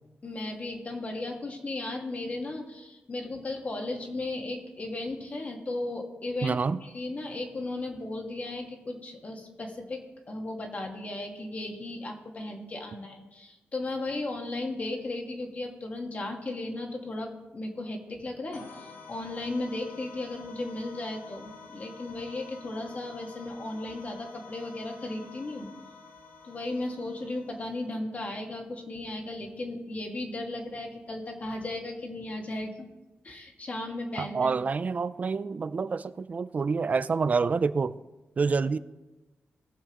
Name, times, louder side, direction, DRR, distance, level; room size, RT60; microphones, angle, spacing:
voice 1, 0.2-25.7 26.4-32.9 33.2-34.5, left 2 dB, 35° left, 1.5 m, -35 dB
voice 2, 6.4-6.8 34.2-37.9 38.4-38.8, right 4 dB, 35° right, 0.3 m, -27 dB
sound 1, 18.5-28.0, left 4 dB, 70° left, 1.2 m, -49 dB
19.0 x 7.0 x 3.0 m
wide cardioid pair, 140°, 4 cm